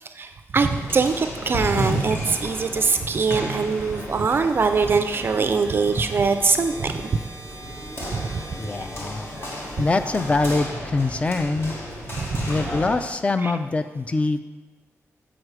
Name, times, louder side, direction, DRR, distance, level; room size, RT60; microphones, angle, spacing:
voice 1, 0.2-7.1 8.1-8.4 8.8-8.9 12.2-12.5 13.4-13.5, right 4 dB, 45° right, 8 dB, 0.3 m, -23 dB
sound 1, 0.6-13.1, equal, 50° left, 1.4 m, -33 dB
sound 2, 3.1-11.2, right 1 dB, 90° left, 2.1 m, -44 dB
voice 2, 8.6-9.4 9.8-11.7 12.5-14.4, left 3 dB, 25° left, 10 dB, 0.4 m, -24 dB
7.7 x 5.0 x 4.7 m, 1.4 s
wide cardioid pair, 135°, 5 cm